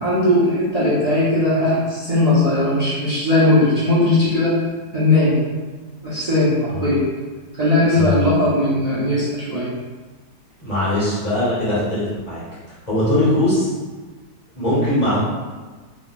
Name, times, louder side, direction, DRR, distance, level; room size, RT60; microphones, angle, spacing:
voice 1, 0.0-4.6 4.9-5.4 6.0-7.1 7.6-9.7, left 1 dB, 85° right, -11 dB, 0.3 m, -18 dB
voice 2, 7.9-8.4 10.6-12.4 12.9-13.7 14.5-15.2, left 1 dB, 25° left, -10 dB, 1.4 m, -20 dB
3.6 x 3.0 x 2.3 m, 1.4 s
omnidirectional pair, 1.8 m